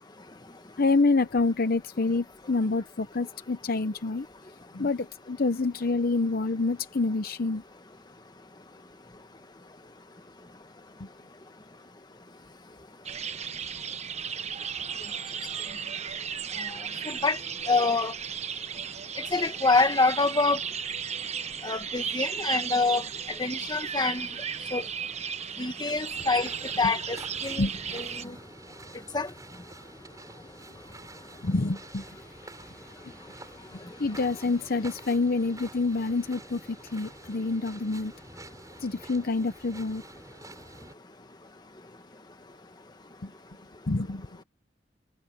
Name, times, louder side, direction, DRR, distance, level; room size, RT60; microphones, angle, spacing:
voice 1, 0.8-4.3 4.7-7.6 11.0-11.1 26.8-26.9 27.6-28.0 28.2-28.3 31.4-32.1 33.0-33.1 34.0-38.1 38.8-40.0 43.2-43.3 43.9-44.3, left 3 dB, 55° left, 0.8 m, -27 dB
sound 1, 13.0-28.2, right 7 dB, 35° right, 1.2 m, -35 dB
voice 2, 17.1-17.4 17.7-18.1 19.3-20.6 21.6-23.0 23.4-24.3 24.7-24.8 25.6-26.5 26.8-28.3 29.1-29.3, left 3 dB, 25° left, 1.4 m, -26 dB
sound 2, 26.1-40.9, right 2 dB, 20° right, 7.8 m, -48 dB
head